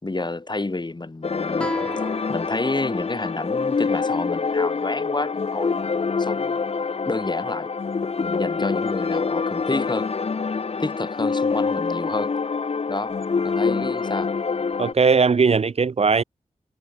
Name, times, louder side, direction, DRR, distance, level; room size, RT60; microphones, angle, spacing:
voice 1, 0.0-1.9 2.3-6.6 7.1-7.7 8.2-10.1 10.8-12.4 12.9-13.2 13.4-14.4, left 2 dB, 35° left, 3.0 m, -29 dB
sound 1, 1.2-14.9, left 5 dB, 55° left, 0.7 m, -26 dB
Guitar, 1.6-4.8, equal, 10° left, 5.2 m, -36 dB
voice 2, 14.8-16.2, right 5 dB, 55° right, 0.6 m, -19 dB
cardioid pair, 55°, 13 cm